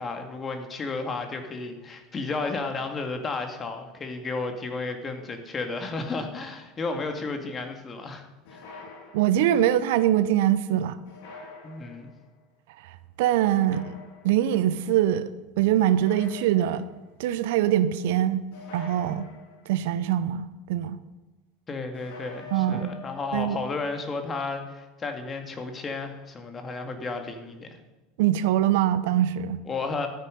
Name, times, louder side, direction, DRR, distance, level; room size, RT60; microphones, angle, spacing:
voice 1, 0.0-8.2 8.5-8.6 11.6-12.1 21.7-27.7 29.7-30.1, left 3 dB, 30° left, 5 dB, 2.2 m, -33 dB
sound 1, 8.4-9.7 11.0-12.2 13.5-14.5 15.9-17.1 18.5-19.8 21.9-23.2, left 4 dB, 65° left, 3.5 m, -45 dB
voice 2, 9.1-11.0 12.8-14.0 14.2-15.3 15.6-16.9 17.2-18.4 18.7-19.3 19.7-21.0 22.5-22.9 23.3-23.6 28.2-29.6, right 11 dB, 70° right, 14 dB, 0.6 m, -23 dB
13.0 x 9.3 x 5.3 m, 1.1 s
hypercardioid pair, 80°, 0 cm